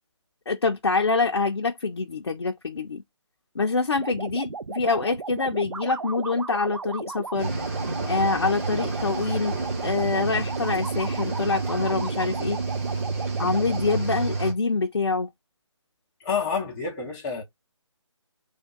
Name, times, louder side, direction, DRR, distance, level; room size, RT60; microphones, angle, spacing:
voice 1, 0.5-3.0 3.5-7.5 8.1-9.6 9.8-12.6 13.4-15.3, left 4 dB, 55° left, 0.6 m, -25 dB
sound 1, 4.0-14.0, right 4 dB, 75° right, 0.5 m, -36 dB
Cricket / Waves surf, 7.4-14.5, right 3 dB, 25° right, 1.1 m, -29 dB
voice 2, 16.2-17.4, left 5 dB, 5° left, 0.5 m, -28 dB
3.5 x 2.3 x 3.9 m
figure-of-eight pair, 155°, 16 cm